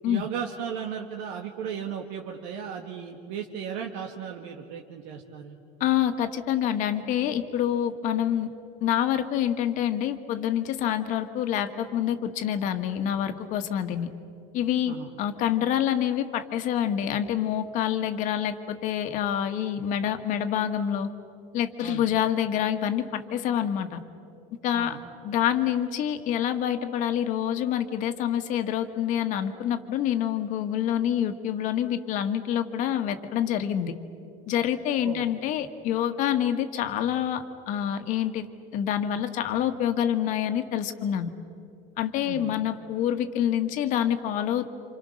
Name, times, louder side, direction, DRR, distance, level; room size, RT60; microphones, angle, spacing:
voice 1, 0.1-5.6 14.9-15.1 21.8-22.0 24.7-25.0 35.0-35.3 42.2-42.5, right 8 dB, 75° right, 1 dB, 1.9 m, -35 dB
voice 2, 5.8-8.5 8.8-14.1 14.5-21.1 21.5-24.0 24.6-25.0 25.2-33.9 34.5-38.5 38.7-41.3 42.0-44.7, left 10 dB, 55° left, 7 dB, 1.6 m, -27 dB
28.5 x 27.5 x 6.5 m, 2.6 s
cardioid pair, 145°, 16 cm